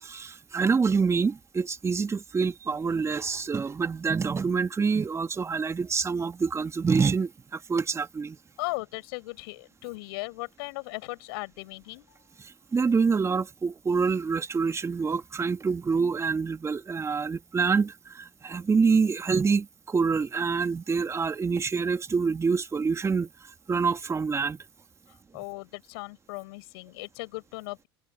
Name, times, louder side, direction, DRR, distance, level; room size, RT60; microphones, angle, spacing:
voice 1, 0.0-8.4 12.4-23.3 23.7-24.6, right 5 dB, 20° right, 2.3 m, -26 dB
voice 2, 8.6-12.1 25.3-27.9, left 25 dB, 65° left, 6.8 m, -37 dB
hypercardioid pair, 85°, 13 cm